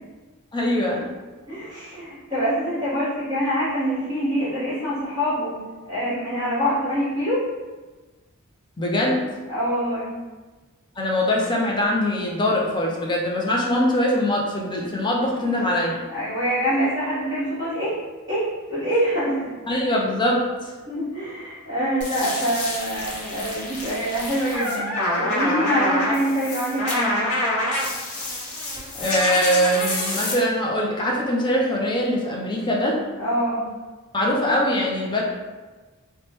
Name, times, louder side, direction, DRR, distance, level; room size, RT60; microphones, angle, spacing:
voice 1, 0.5-1.1 8.8-9.2 11.0-16.0 19.7-20.7 29.0-33.0 34.1-35.2, left 1 dB, 20° left, -2 dB, 0.5 m, -22 dB
voice 2, 1.5-5.5 5.9-7.4 9.5-10.2 15.4-15.7 16.1-18.0 18.3-19.5 20.8-24.9 25.1-27.3 33.2-33.6, equal, 20° right, -12 dB, 1.4 m, -25 dB
sound 1, 22.0-30.3, left 1 dB, 70° left, 0.8 m, -27 dB
3.0 x 2.2 x 2.9 m, 1.3 s
head